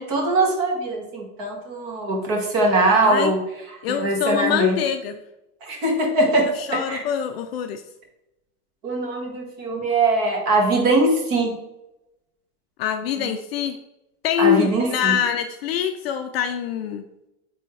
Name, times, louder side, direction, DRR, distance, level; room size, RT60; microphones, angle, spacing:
voice 1, 0.0-3.4 3.9-4.8 5.6-7.0 8.8-11.6 13.2-13.3 14.4-15.2, right 2 dB, 40° right, 0 dB, 1.8 m, -21 dB
voice 2, 3.0-3.3 3.8-5.2 6.5-7.8 12.8-13.8 14.2-17.0, left 9 dB, 45° left, 6 dB, 0.4 m, -24 dB
8.7 x 3.4 x 3.2 m, 0.91 s
supercardioid pair, 150°, 45 cm